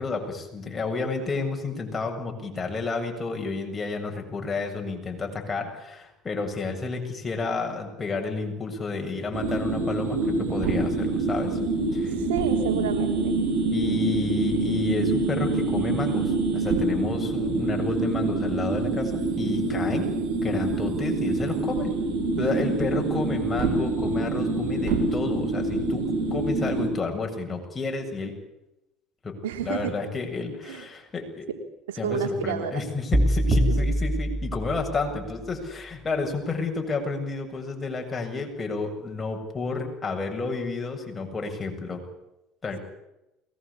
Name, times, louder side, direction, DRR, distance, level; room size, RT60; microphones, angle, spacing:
voice 1, 0.0-11.6 11.9-12.1 13.7-20.1 20.4-21.9 22.4-28.3 29.2-29.3 29.6-31.5 32.0-42.0 42.6-42.8, left 3 dB, 25° left, 2 dB, 7.5 m, -31 dB
sound 1, 9.3-26.9, right 3 dB, 65° right, 6.9 m, -26 dB
voice 2, 12.2-13.4 19.9-20.1 22.4-22.7 29.4-29.9 30.7-30.9 31.9-32.8 33.5-33.8, right 8 dB, 85° right, 6 dB, 3.3 m, -30 dB
sound 2, 33.1-35.2, equal, 30° right, 3.3 m, -24 dB
22.5 x 20.5 x 8.7 m, 0.91 s
hypercardioid pair, 80°, 0 cm